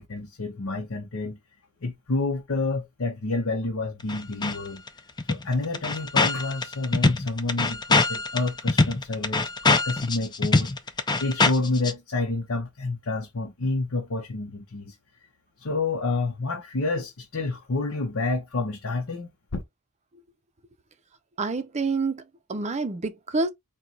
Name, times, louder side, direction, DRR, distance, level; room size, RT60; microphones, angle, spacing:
voice 1, 0.0-1.4 1.8-4.8 5.3-10.7 11.2-15.0 15.6-19.6, left 3 dB, 60° left, 0.8 m, -29 dB
sound 1, 4.1-4.6 4.9-5.0 5.2-11.9, left 3 dB, 20° left, 0.5 m, -23 dB
voice 2, 21.4-23.5, right 3 dB, 30° right, 0.5 m, -28 dB
4.4 x 2.3 x 3.8 m
head